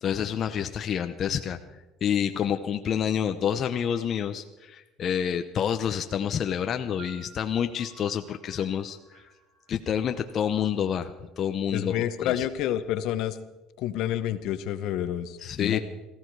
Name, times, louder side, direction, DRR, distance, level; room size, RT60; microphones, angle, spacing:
voice 1, 0.0-1.6 2.0-9.2 9.7-12.5 15.4-15.8, left 8 dB, 40° left, 7 dB, 0.8 m, -28 dB
sound 1, 7.0-10.8, right 6 dB, 85° right, 5.3 m, -53 dB
voice 2, 11.7-13.4 13.8-15.8, left 11 dB, 60° left, 12 dB, 1.0 m, -29 dB
18.5 x 15.0 x 4.8 m, 1.1 s
cardioid pair, 130°, 0 cm